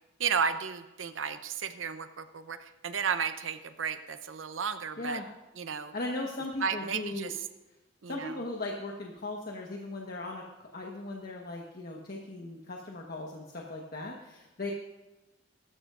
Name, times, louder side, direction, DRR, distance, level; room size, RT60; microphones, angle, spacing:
voice 1, 0.2-5.2 5.6-5.9 6.6-7.4 8.0-8.3, right 6 dB, 80° right, 9 dB, 0.7 m, -33 dB
voice 2, 5.9-7.3 8.1-14.7, left 2 dB, 50° left, -1 dB, 1.3 m, -38 dB
20.5 x 13.0 x 2.5 m, 1.0 s
head